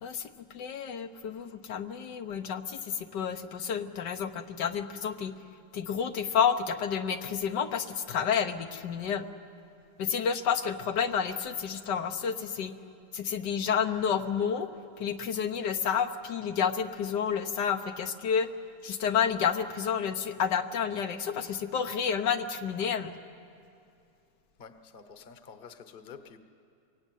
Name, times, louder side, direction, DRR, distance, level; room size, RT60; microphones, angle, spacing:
voice 1, 0.0-5.3 5.7-9.3 10.0-12.7 13.1-14.7 15.0-18.5 18.8-23.1, left 7 dB, 80° left, 6 dB, 1.6 m, -30 dB
voice 2, 24.6-26.4, left 6 dB, 35° left, 8 dB, 1.1 m, -49 dB
23.5 x 22.5 x 9.2 m, 2.5 s
omnidirectional pair, 1.8 m